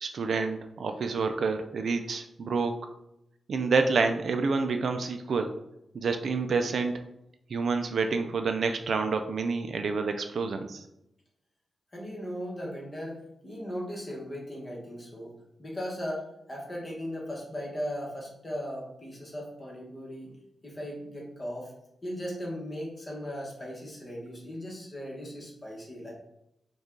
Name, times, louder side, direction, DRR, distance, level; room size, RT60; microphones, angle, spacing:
voice 1, 0.0-2.8 3.5-5.5 5.9-6.9 7.5-10.8, right 4 dB, 60° right, 6 dB, 0.4 m, -28 dB
voice 2, 11.9-15.3 15.6-20.3 20.6-21.7 22.0-26.1, equal, 25° left, -3 dB, 1.2 m, -37 dB
5.2 x 2.4 x 3.7 m, 0.83 s
wide cardioid pair, 155°, 0 cm